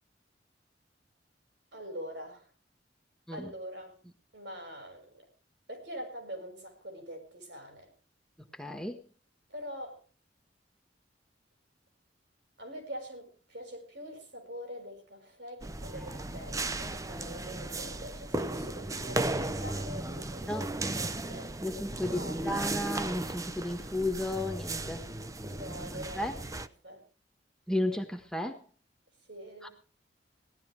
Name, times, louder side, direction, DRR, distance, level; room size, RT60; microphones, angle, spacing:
voice 1, 1.7-2.5 3.3-4.0 4.3-5.2 5.7-7.9 9.5-10.0 12.6-21.5 22.0-22.5 25.5-26.5 26.8-27.0 29.3-29.7, equal, 70° right, 4 dB, 6.2 m, -44 dB
voice 2, 8.5-9.0 15.9-16.2 20.5-20.6 21.6-25.0 26.2-26.3 27.7-28.6 29.6-29.7, left 1 dB, 5° left, 5 dB, 1.4 m, -33 dB
sound 1, 15.6-26.7, right 2 dB, 20° right, 0.7 m, -36 dB
17.5 x 12.0 x 4.8 m, 0.37 s
head